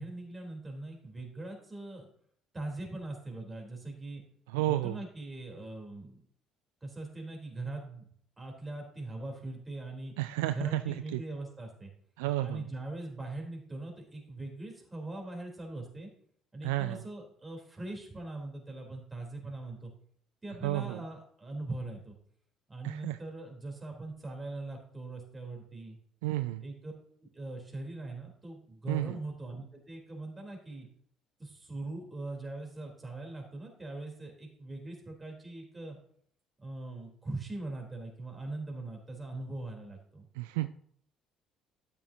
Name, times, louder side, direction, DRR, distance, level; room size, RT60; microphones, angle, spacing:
voice 1, 0.0-2.1 2.5-4.2 4.7-6.2 6.8-8.0 8.4-10.1 10.5-11.9 12.4-16.1 16.5-19.9 20.4-22.2 22.7-26.0 26.6-26.9 27.2-30.9 31.4-36.0 36.6-40.3, right 2 dB, 20° right, 1 dB, 3.6 m, -41 dB
voice 2, 4.5-5.0 10.2-11.2 12.2-12.6 16.6-17.0 20.6-21.0 22.8-23.2 26.2-26.6 28.9-29.2 40.4-40.7, right 16 dB, 75° right, 12 dB, 0.3 m, -31 dB
12.5 x 7.1 x 2.8 m, 0.64 s
hypercardioid pair, 55°, 0 cm